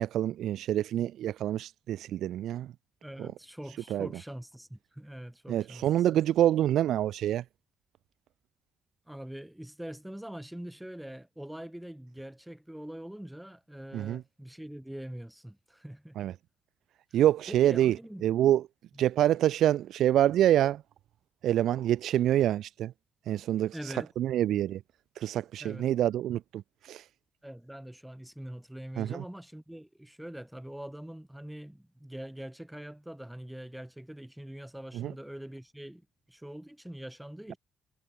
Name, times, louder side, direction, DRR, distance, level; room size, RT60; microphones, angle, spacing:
voice 1, 0.0-2.7 3.2-3.3 3.9-4.1 5.5-7.4 13.9-14.2 16.2-16.3 17.1-18.0 18.2-18.6 19.0-20.8 21.4-22.9 23.3-24.8 25.2-27.0 29.0-29.2 34.9-35.1, right 12 dB, 75° right, 0.6 m, -26 dB
voice 2, 3.0-6.2 9.1-16.2 17.1-17.2 17.5-18.2 18.9-19.1 23.7-24.1 25.6-26.0 27.4-37.6, right 1 dB, 5° right, 7.9 m, -43 dB
cardioid pair, 90°, 0 cm